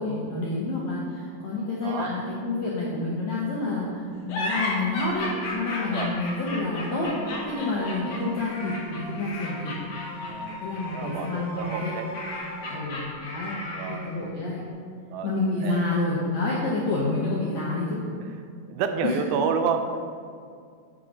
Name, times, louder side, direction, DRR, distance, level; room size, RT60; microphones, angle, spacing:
voice 1, 0.0-9.7 10.1-10.3 10.6-11.9 12.7-14.6 15.2-18.0 19.0-19.1, left 2 dB, 80° left, -5 dB, 1.6 m, -29 dB
voice 2, 1.8-2.2 5.9-6.1 10.3-10.6 10.9-12.1 12.7-12.9 13.7-14.1 15.1-15.3 15.6-15.8 18.2-18.4 18.7-20.0, right 6 dB, 85° right, 6 dB, 2.3 m, -29 dB
sound 1, 4.3-14.1, left 2 dB, 60° left, 2.0 m, -34 dB
sound 2, 5.8-12.7, equal, 70° right, 1.8 m, -39 dB
7.7 x 3.6 x 5.0 m, 2.2 s
omnidirectional pair, 4.2 m